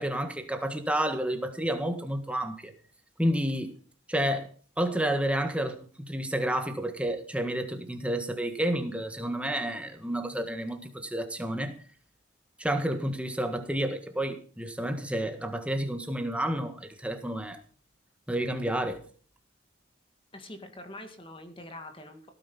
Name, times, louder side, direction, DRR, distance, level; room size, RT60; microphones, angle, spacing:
voice 1, 0.0-2.7 3.2-3.7 4.1-4.5 4.8-11.7 12.6-17.6 18.3-19.0, right 1 dB, 5° right, 6 dB, 1.6 m, -30 dB
voice 2, 20.3-22.3, left 1 dB, 25° left, 6 dB, 1.9 m, -44 dB
17.5 x 9.7 x 5.5 m, 0.42 s
head